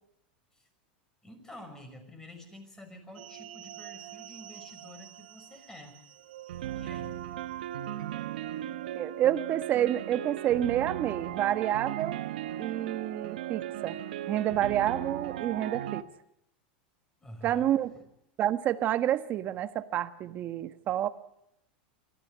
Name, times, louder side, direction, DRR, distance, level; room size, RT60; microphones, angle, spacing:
voice 1, 1.2-6.0 6.7-7.2 17.2-18.1, equal, 10° left, 6 dB, 5.9 m, -49 dB
sound 1, 3.2-16.0, right 12 dB, 85° right, 1.1 m, -38 dB
voice 2, 8.9-12.2 12.6-14.0 14.3-16.0 17.4-17.9 18.4-21.1, right 11 dB, 35° right, 11 dB, 1.4 m, -29 dB
25.0 x 15.0 x 9.5 m, 0.81 s
supercardioid pair, 130°, 5 cm